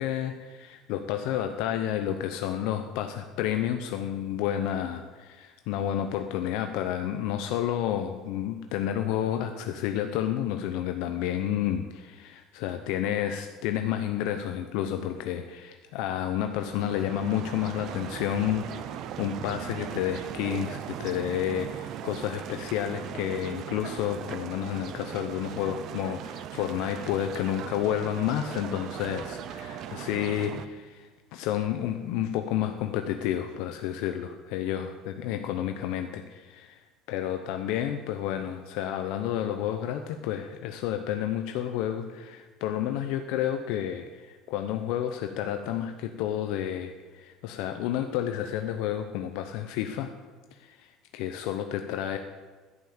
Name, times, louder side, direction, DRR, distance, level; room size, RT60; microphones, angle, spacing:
voice 1, 0.0-36.8 37.1-50.1 50.6-50.9 51.1-52.2, left 10 dB, 60° left, 6 dB, 0.7 m, -30 dB
sound 1, 16.4-30.7, right 10 dB, 40° right, 0.5 m, -39 dB
11.0 x 5.8 x 8.7 m, 1.3 s
cardioid pair, 170°, 0 cm